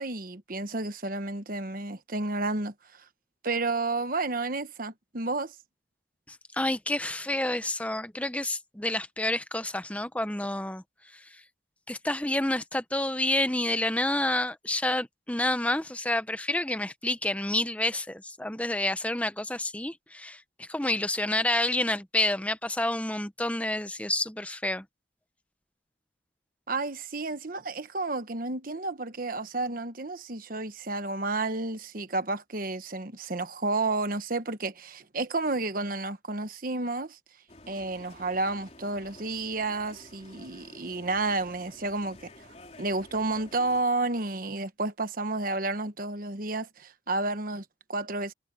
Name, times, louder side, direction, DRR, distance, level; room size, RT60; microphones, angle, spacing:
voice 1, 0.0-2.7 3.4-5.5 26.7-37.2 37.7-42.3 42.8-48.3, right 3 dB, 50° right, 1.2 m, -31 dB
voice 2, 6.3-10.8 11.9-24.8, left 1 dB, 5° left, 0.8 m, -29 dB
sound 1, 37.5-43.8, left 2 dB, 35° left, 3.7 m, -51 dB
head